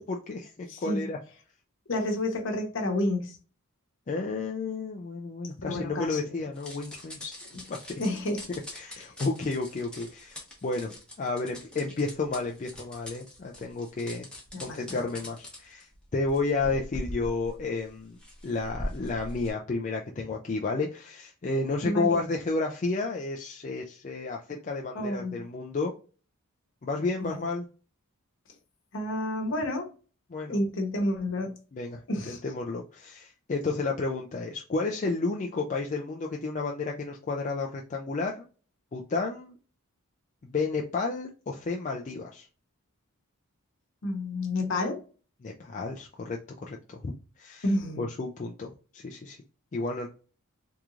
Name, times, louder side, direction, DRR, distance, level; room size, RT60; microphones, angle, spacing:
voice 1, 0.1-1.2 4.1-7.3 7.7-7.8 8.7-14.3 14.6-25.9 26.8-27.7 30.3-30.6 31.7-38.4 38.9-39.6 40.4-42.5 45.4-47.6 48.0-49.4 49.7-50.1, left 3 dB, 35° left, 0.4 m, -32 dB
voice 2, 0.7-1.1 1.9-3.4 5.6-6.4 7.5-7.6 8.0-8.5 9.0-9.1 14.5-15.2 21.8-22.2 24.9-25.4 27.2-27.4 28.9-29.9 30.5-31.6 32.1-32.4 44.0-45.0 47.6-48.1, left 1 dB, 60° left, 1.0 m, -30 dB
sound 1, 6.5-19.5, left 1 dB, 5° left, 1.0 m, -42 dB
3.5 x 3.0 x 2.4 m
head